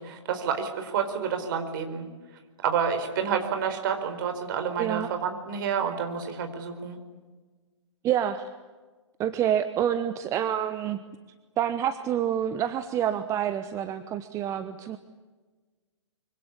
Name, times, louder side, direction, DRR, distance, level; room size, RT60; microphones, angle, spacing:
voice 1, 0.0-2.1 2.6-7.0, right 7 dB, 45° right, 7 dB, 4.6 m, -29 dB
voice 2, 4.8-5.1 8.0-8.5 9.2-11.0 11.6-15.0, right 10 dB, 20° right, 10 dB, 1.0 m, -27 dB
25.0 x 25.0 x 8.5 m, 1.3 s
figure-of-eight pair, 120°, 15 cm